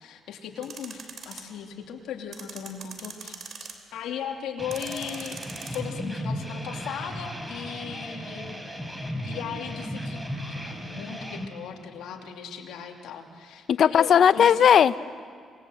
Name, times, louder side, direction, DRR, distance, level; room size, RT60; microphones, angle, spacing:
voice 1, 0.0-3.4 3.9-5.4 5.6-8.6 9.2-14.7, left 8 dB, 85° left, 2 dB, 2.6 m, -37 dB
sound 1, 0.6-1.4 2.3-3.9 4.7-5.8, right 6 dB, 60° right, 3.2 m, -41 dB
sound 2, 4.6-11.5, equal, 5° right, 4.0 m, -35 dB
voice 2, 13.7-15.0, left 8 dB, 60° left, 15 dB, 0.7 m, -17 dB
27.0 x 20.0 x 7.8 m, 2.1 s
cardioid pair, 90°, 0 cm